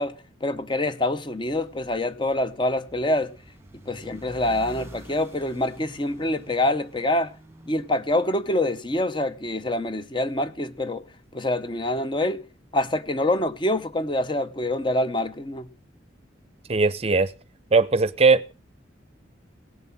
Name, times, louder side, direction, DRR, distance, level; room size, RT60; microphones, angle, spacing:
voice 1, 0.0-3.3 3.8-7.3 7.7-11.0 11.3-12.5 12.7-15.7, left 1 dB, 25° left, 0.8 m, -26 dB
sound 1, 1.3-9.7, right 1 dB, 15° right, 1.5 m, -48 dB
voice 2, 16.7-17.3 17.7-18.4, right 4 dB, 35° right, 0.6 m, -19 dB
18.0 x 7.5 x 5.8 m
head